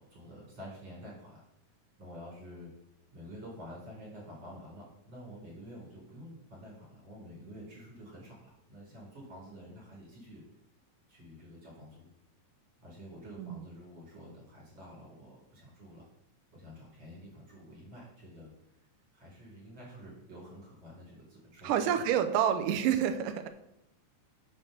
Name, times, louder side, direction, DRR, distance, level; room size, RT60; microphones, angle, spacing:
voice 1, 0.0-1.4 2.0-2.7 3.1-10.4 11.1-12.1 12.8-16.1 16.5-18.5 19.1-21.9, equal, 35° right, -4 dB, 4.6 m, -49 dB
voice 2, 21.6-23.5, right 9 dB, 75° right, 7 dB, 2.4 m, -28 dB
7.6 x 6.3 x 6.6 m, 0.82 s
omnidirectional pair, 4.0 m